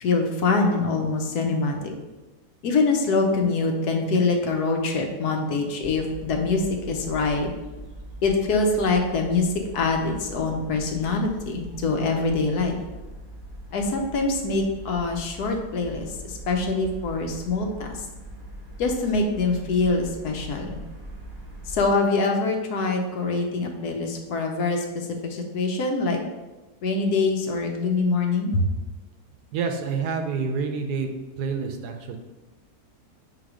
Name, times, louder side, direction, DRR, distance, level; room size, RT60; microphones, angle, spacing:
voice 1, 0.0-1.9 2.6-6.6 6.9-7.5 8.2-9.5 9.7-12.8 13.7-17.9 18.8-20.8 21.7-26.2 26.8-28.7, left 3 dB, 70° left, 3 dB, 1.3 m, -24 dB
sound 1, 5.8-21.9, right 1 dB, 35° right, 1.1 m, -41 dB
voice 2, 29.5-31.1 31.4-32.2, right 5 dB, 75° right, 5 dB, 1.2 m, -28 dB
4.9 x 4.0 x 4.9 m, 1.1 s
omnidirectional pair, 1.8 m